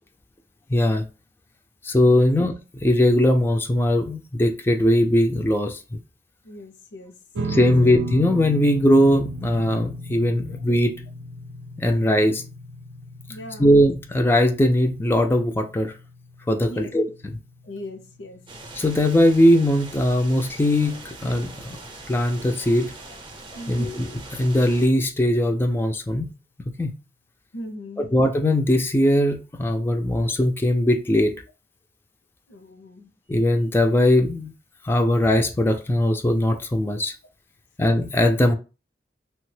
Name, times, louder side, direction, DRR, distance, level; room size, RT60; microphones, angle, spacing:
voice 1, 0.7-1.0 1.8-6.0 7.5-10.9 11.8-12.4 13.6-15.9 16.5-17.0 18.7-21.8 22.1-22.9 23.7-26.3 26.8-26.9 28.0-31.3 33.3-34.5 34.8-37.1 37.8-38.5, left 1 dB, 15° left, 0.3 m, -20 dB
voice 2, 6.4-7.1 7.6-8.0 10.5-10.6 13.3-13.7 16.7-16.9 17.6-18.4 23.0-23.2 23.5-24.0 27.5-28.1 32.5-33.1, equal, 85° left, 0.6 m, -39 dB
sound 1, 7.3-19.9, right 1 dB, 75° right, 0.4 m, -36 dB
sound 2, 18.5-24.9, right 2 dB, 30° right, 0.6 m, -41 dB
3.2 x 2.1 x 3.1 m
head